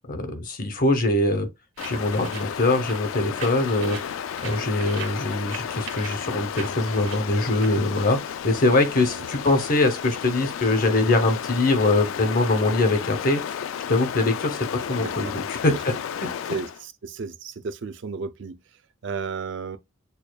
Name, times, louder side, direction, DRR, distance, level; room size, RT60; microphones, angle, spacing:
voice 1, 0.1-1.5 1.8-4.2 4.4-8.2 8.4-13.4 13.9-15.9, left 2 dB, 45° left, 0.8 m, -23 dB
Stream, 1.8-16.8, left 8 dB, 80° left, 0.3 m, -33 dB
sound 1, 1.8-8.7, right 6 dB, 80° right, 1.4 m, -42 dB
voice 2, 15.0-15.3 16.2-16.7 17.0-18.6 19.0-19.8, right 5 dB, 60° right, 0.4 m, -33 dB
6.6 x 2.2 x 2.2 m
head